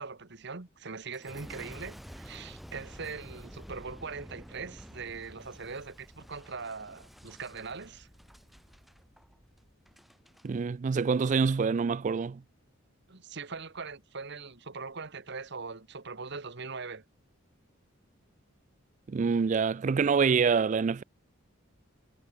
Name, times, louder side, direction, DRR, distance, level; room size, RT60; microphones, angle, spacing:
voice 1, 0.0-8.1 13.1-17.0, right 4 dB, 60° right, 1.5 m, -41 dB
Boom, 1.1-10.5 11.0-11.5, equal, ahead, 2.1 m, -50 dB
voice 2, 10.4-12.4 19.1-21.0, right 5 dB, 35° right, 0.3 m, -26 dB
head